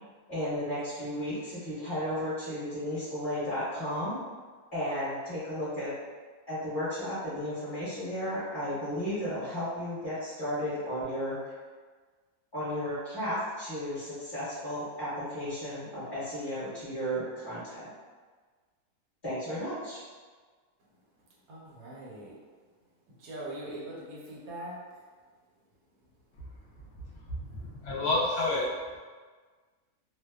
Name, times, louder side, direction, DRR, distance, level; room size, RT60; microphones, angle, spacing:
voice 1, 0.3-4.2 4.7-5.9 6.5-11.4 12.5-17.9 19.2-20.0, equal, 25° left, -13 dB, 0.8 m, -34 dB
voice 2, 21.5-22.3 23.2-24.8, right 1 dB, 75° right, -4 dB, 1.1 m, -41 dB
voice 3, 26.8-28.7, left 2 dB, 90° left, -4 dB, 0.5 m, -30 dB
2.7 x 2.0 x 2.2 m, 1.5 s
omnidirectional pair, 1.7 m